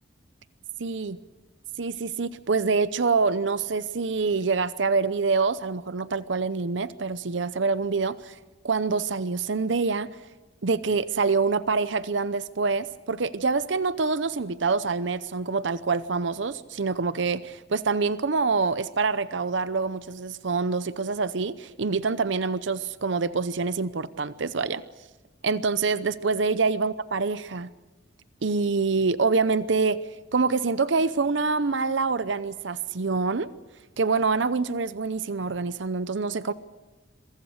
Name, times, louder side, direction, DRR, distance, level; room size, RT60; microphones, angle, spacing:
voice 1, 0.8-1.2 1.8-8.4 8.6-10.1 10.6-24.8 25.4-27.7 28.4-30.0 30.3-33.5 34.0-36.5, right 4 dB, 70° right, 15 dB, 0.7 m, -26 dB
26.5 x 24.0 x 6.5 m, 1.2 s
head